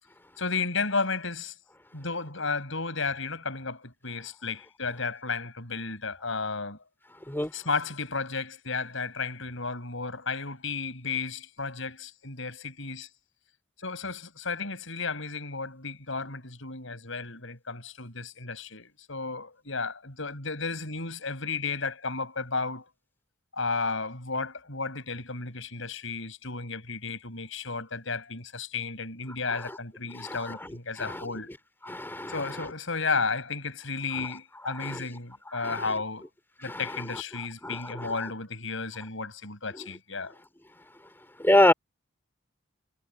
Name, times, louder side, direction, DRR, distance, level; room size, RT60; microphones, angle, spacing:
voice 1, 0.4-1.5 1.9-6.8 7.5-13.1 13.8-22.9 23.5-31.5 32.3-36.2 36.6-40.3, left 4 dB, 65° left, 6.9 m, -33 dB
voice 2, 31.9-32.3 34.8-35.0 35.6-35.7 37.6-38.1 41.4-41.7, left 1 dB, 10° left, 3.4 m, -24 dB
head